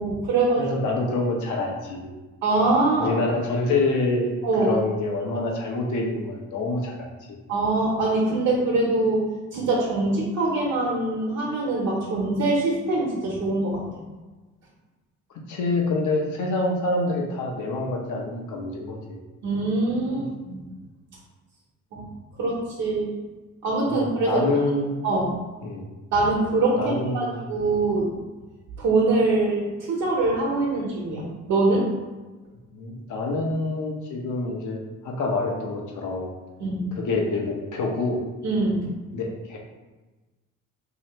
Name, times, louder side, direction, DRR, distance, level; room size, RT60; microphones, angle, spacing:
voice 1, 0.0-0.6 2.4-3.1 4.4-4.7 7.5-9.2 9.5-13.8 19.4-20.7 21.9-22.0 22.4-23.1 23.6-24.4 25.0-25.3 26.1-28.1 28.8-31.9 36.6-36.9 38.4-38.9, right 2 dB, 70° right, -5 dB, 1.0 m, -23 dB
voice 2, 0.6-2.1 3.0-4.3 4.6-7.1 15.5-19.0 20.1-20.2 23.9-24.9 25.6-25.8 26.8-27.4 32.7-34.8 35.0-36.3 37.0-38.2 39.1-39.6, left 2 dB, 80° left, -1 dB, 0.9 m, -26 dB
3.2 x 3.0 x 2.9 m, 1.2 s
cardioid pair, 90°, 30 cm